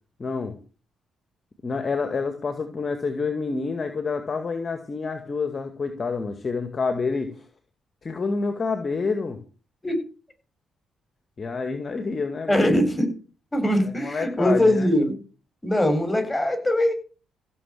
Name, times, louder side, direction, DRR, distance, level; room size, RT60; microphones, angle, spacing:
voice 1, 0.2-0.5 1.6-7.4 8.0-9.4 11.4-12.7 13.9-14.9, left 4 dB, 40° left, 7 dB, 2.1 m, -28 dB
voice 2, 12.5-13.1 13.5-15.2 15.6-16.9, left 1 dB, 20° left, 5 dB, 7.4 m, -21 dB
15.5 x 6.9 x 8.6 m, 0.37 s
hypercardioid pair, 45°, 0 cm